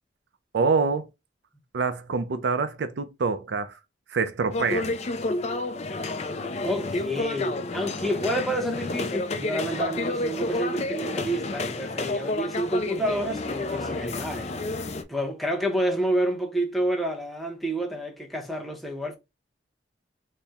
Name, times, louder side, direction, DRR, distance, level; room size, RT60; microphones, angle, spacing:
voice 1, 0.5-1.1 1.7-3.7 4.1-4.9, right 4 dB, 70° right, 0.4 m, -26 dB
sound 1, 4.5-15.0, left 2 dB, 35° left, 0.4 m, -30 dB
voice 2, 6.6-14.5 15.1-19.2, right 1 dB, ahead, 0.7 m, -29 dB
4.3 x 2.1 x 3.4 m
head